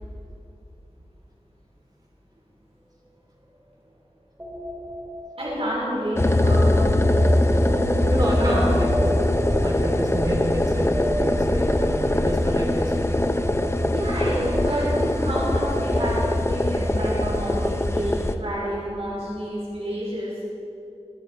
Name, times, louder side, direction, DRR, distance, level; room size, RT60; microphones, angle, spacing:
sound 1, 4.4-17.2, right 1 dB, 20° right, 3.0 m, -34 dB
voice 1, 5.4-6.9 8.4-8.6 9.9-10.0 13.9-20.4, equal, 60° right, -6 dB, 5.0 m, -29 dB
sound 2, 6.2-18.3, left 1 dB, 25° left, 0.8 m, -22 dB
sound 3, 6.5-12.2, left 1 dB, 75° left, 2.7 m, -37 dB
voice 2, 8.1-9.3 9.6-13.4 17.9-18.0, equal, 35° right, -2 dB, 4.1 m, -30 dB
23.5 x 12.5 x 4.6 m, 2.7 s
wide cardioid pair, 70°, 11 cm